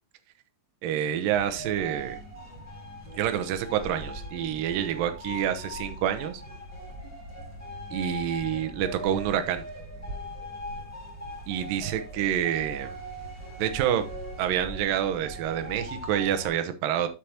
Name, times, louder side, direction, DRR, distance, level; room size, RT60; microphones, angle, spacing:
voice 1, 0.8-2.2 3.2-6.4 7.9-9.6 11.5-12.9 13.6-14.0 14.4-17.1, right 10 dB, 70° right, 8 dB, 2.5 m, -27 dB
sound 1, 1.3-16.5, equal, 5° left, 3.9 m, -40 dB
8.2 x 7.7 x 2.9 m, 0.27 s
omnidirectional pair, 4.3 m